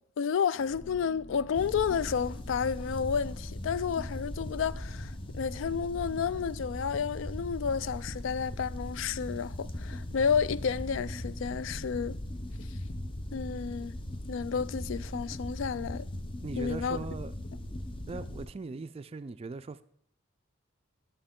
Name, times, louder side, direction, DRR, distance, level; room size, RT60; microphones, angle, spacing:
voice 1, 0.2-12.2 13.3-13.9 14.3-16.1 16.6-17.0, left 6 dB, 70° left, 0.3 m, -31 dB
sound 1, 0.5-5.0 5.5-5.6, left 1 dB, 50° left, 1.9 m, -53 dB
sound 2, 1.5-18.5, left 1 dB, 25° left, 0.6 m, -39 dB
voice 2, 16.4-17.3 18.1-19.8, right 3 dB, 30° right, 0.3 m, -40 dB
11.5 x 7.3 x 3.6 m
head